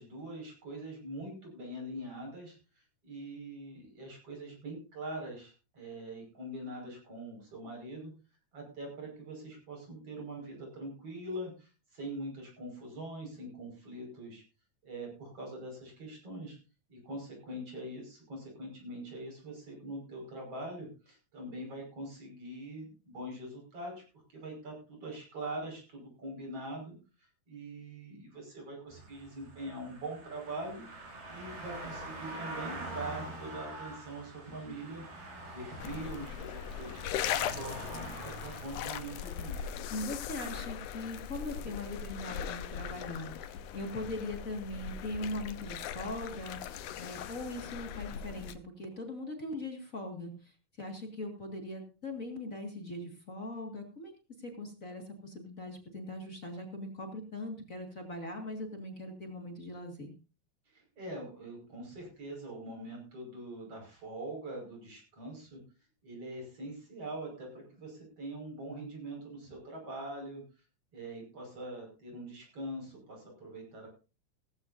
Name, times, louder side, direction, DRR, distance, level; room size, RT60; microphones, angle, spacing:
voice 1, 0.0-8.1 8.5-14.4 14.8-16.6 16.9-24.0 24.3-30.9 31.3-35.1 35.5-39.7 60.7-65.6 66.0-70.4 70.9-73.9, right 1 dB, 45° right, 1 dB, 6.4 m, -43 dB
sound 1, 28.9-43.4 43.8-43.9, right 2 dB, 90° right, 7.0 m, -46 dB
sound 2, 35.8-48.5, left 9 dB, 80° left, 2.3 m, -39 dB
voice 2, 39.9-54.1 54.4-60.1, left 1 dB, 30° left, 2 dB, 1.9 m, -40 dB
17.5 x 15.0 x 2.7 m, 0.32 s
omnidirectional pair, 3.7 m